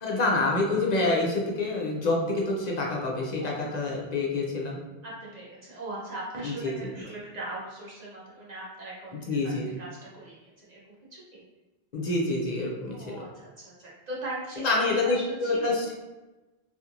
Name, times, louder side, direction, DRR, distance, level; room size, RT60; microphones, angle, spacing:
voice 1, 0.0-4.8 6.4-6.7 9.3-9.6 11.9-13.2 14.6-15.8, left 2 dB, 50° left, -2 dB, 0.6 m, -27 dB
voice 2, 3.4-3.8 5.0-9.9 10.1-11.4 12.9-15.8, right 2 dB, 45° right, -6 dB, 0.7 m, -40 dB
2.5 x 2.4 x 2.8 m, 1.1 s
omnidirectional pair, 1.1 m